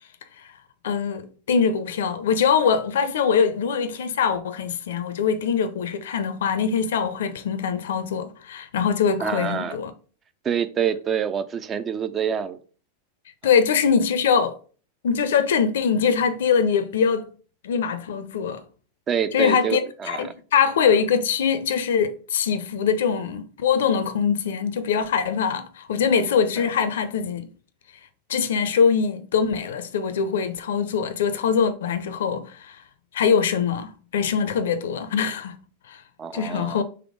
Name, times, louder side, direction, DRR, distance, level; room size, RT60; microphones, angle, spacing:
voice 1, 0.8-9.9 13.4-14.6 15.0-17.3 17.6-18.6 19.3-19.8 20.1-27.5 28.3-32.8 33.1-35.6 35.9-36.0 36.3-36.8, left 6 dB, 60° left, 0.5 m, -23 dB
voice 2, 9.2-9.8 10.4-12.6 19.1-20.3 26.6-26.7 36.2-36.8, right 8 dB, 25° right, 0.3 m, -26 dB
3.4 x 3.1 x 3.7 m
figure-of-eight pair, 90°, 0 cm